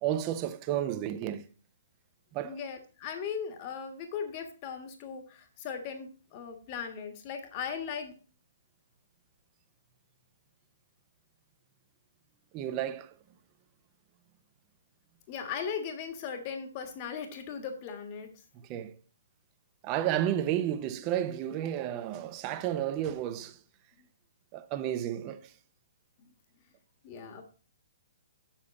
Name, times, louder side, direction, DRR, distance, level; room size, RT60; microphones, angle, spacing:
voice 1, 0.0-1.5 2.3-2.6 12.5-13.2 18.7-19.0 19.8-23.6 24.5-25.5, right 11 dB, 30° right, 0.8 m, -32 dB
voice 2, 2.4-8.1 15.3-18.4 24.0-24.1 26.2-26.3 27.0-27.4, left 7 dB, 35° left, 1.4 m, -38 dB
8.3 x 7.3 x 4.1 m
figure-of-eight pair, 125°, 0 cm